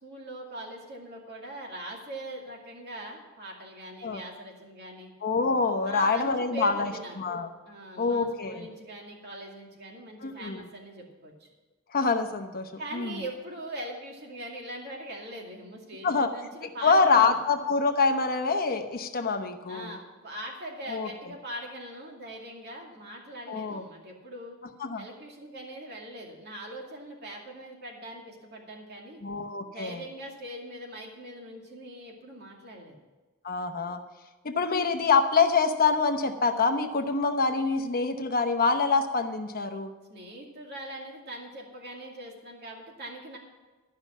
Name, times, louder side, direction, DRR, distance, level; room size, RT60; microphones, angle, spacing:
voice 1, 0.0-5.1 5.8-7.2 7.6-11.5 12.8-17.3 19.7-24.6 25.0-29.2 29.7-33.0 40.1-43.4, right 1 dB, 50° right, 0 dB, 2.4 m, -41 dB
voice 2, 5.2-6.9 7.2-7.5 8.0-8.7 10.2-10.6 11.9-13.2 16.0-16.3 16.8-20.0 20.9-21.1 23.5-23.8 24.8-25.0 29.2-30.0 33.4-34.0 34.4-39.9, left 4 dB, 45° left, 6 dB, 1.0 m, -25 dB
13.0 x 5.6 x 8.3 m, 1.2 s
head